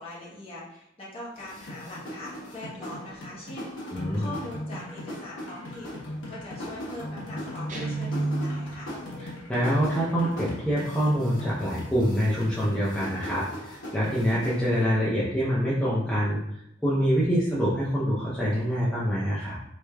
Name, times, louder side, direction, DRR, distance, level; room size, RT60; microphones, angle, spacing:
voice 1, 0.0-8.9, left 1 dB, 30° left, -6 dB, 1.0 m, -42 dB
sound 1, 1.3-14.9, left 1 dB, 90° left, 1.1 m, -38 dB
voice 2, 3.9-4.3 9.2-16.4 16.8-19.6, equal, 5° left, -9 dB, 0.5 m, -25 dB
Guitar, 7.7-8.9, right 2 dB, 40° right, 0.6 m, -29 dB
3.6 x 3.2 x 2.2 m, 0.79 s
head